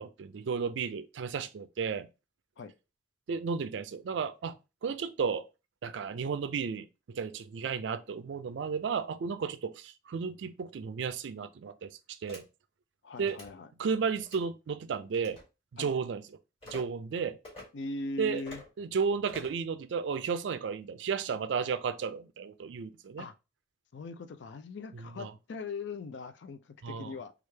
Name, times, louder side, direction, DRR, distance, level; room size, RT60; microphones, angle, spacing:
voice 1, 0.0-2.1 3.3-4.6 4.8-5.4 5.8-12.4 13.2-13.4 13.8-15.4 15.7-16.2 16.7-17.4 18.2-18.4 18.8-23.3 24.9-25.3 26.8-27.1, right 6 dB, 80° right, 0.4 m, -33 dB
sound 1, 12.3-12.4 13.2-13.5 14.2-14.5 15.1-15.4 16.6-16.8 17.4-17.7 18.3-18.7 19.3-19.6, left 2 dB, 30° left, 1.7 m, -47 dB
voice 2, 13.0-13.7 15.8-15.9 17.7-18.6 23.2-23.3 23.9-27.3, left 3 dB, 75° left, 0.4 m, -40 dB
3.2 x 2.4 x 3.2 m
head